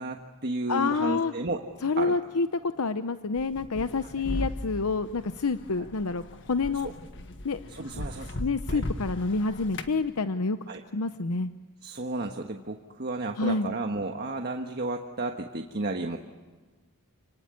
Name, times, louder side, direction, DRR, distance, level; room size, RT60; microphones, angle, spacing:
voice 1, 0.0-1.6 2.0-2.2 5.8-5.9 6.8-6.9 7.7-8.4 8.7-8.8 10.7-10.8 11.8-16.2, right 2 dB, 50° right, 3 dB, 1.4 m, -33 dB
voice 2, 0.7-1.3 1.8-6.9 7.4-7.6 8.4-10.6 10.9-11.5 13.4-13.7, left 4 dB, 75° left, 10 dB, 0.8 m, -28 dB
sound 1, 3.4-10.0, left 1 dB, 60° left, 1.6 m, -37 dB
28.5 x 19.5 x 9.7 m, 1.3 s
head